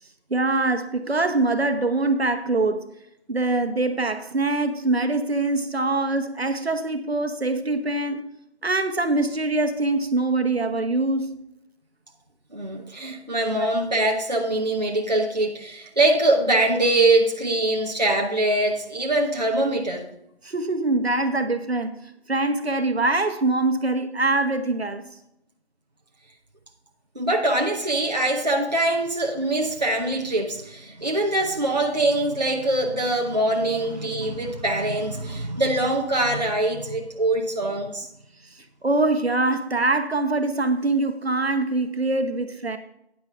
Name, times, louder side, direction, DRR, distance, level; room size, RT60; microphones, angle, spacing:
voice 1, 0.3-2.8 3.3-8.3 8.6-11.4 13.6-13.7 20.4-22.0 22.3-25.1 33.3-33.4 38.8-42.8, right 2 dB, 65° right, 1.2 m, -23 dB
voice 2, 12.5-20.0 27.1-38.1, right 2 dB, 40° right, 0.9 m, -23 dB
10.0 x 9.2 x 3.5 m
figure-of-eight pair, 180°, 33 cm